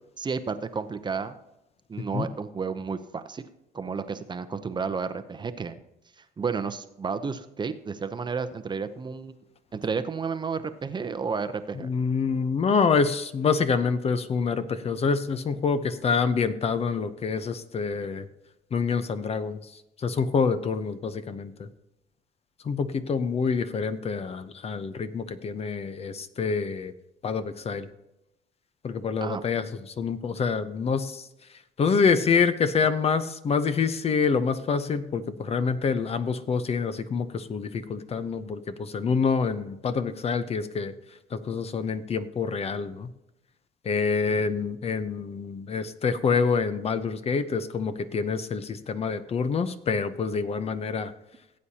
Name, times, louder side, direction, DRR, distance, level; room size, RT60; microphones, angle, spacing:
voice 1, 0.2-1.4 1.9-3.4 3.7-5.8 6.2-9.4 9.7-11.9 29.2-29.4, right 5 dB, 25° right, 10 dB, 0.7 m, -32 dB
voice 2, 11.7-18.3 18.7-19.7 20.0-21.7 22.6-26.9 27.2-27.9 28.8-31.3 31.8-40.9 41.3-43.1 43.8-51.1, left 5 dB, 35° left, 12 dB, 0.8 m, -26 dB
17.5 x 8.5 x 2.9 m, 0.90 s
cardioid pair, 110°, 17 cm